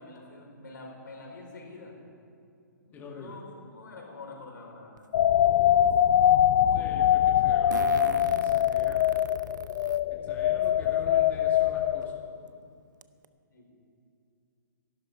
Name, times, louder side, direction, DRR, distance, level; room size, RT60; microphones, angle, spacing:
voice 1, 0.0-2.0 2.8-5.1 13.5-13.7, left 3 dB, 75° left, 0 dB, 4.7 m, -46 dB
voice 2, 2.9-3.4 6.7-9.0 10.1-12.1, left 3 dB, 15° left, 0 dB, 1.6 m, -44 dB
Fart, 5.0-5.1 7.7-10.0 10.6-10.7 12.0-12.1 12.5-12.6 13.0-13.2, right 7 dB, 70° right, 0.7 m, -42 dB
sound 1, 5.1-12.4, left 11 dB, 45° left, 0.4 m, -23 dB
23.0 x 12.0 x 4.9 m, 2.5 s
hypercardioid pair, 135°, 10 cm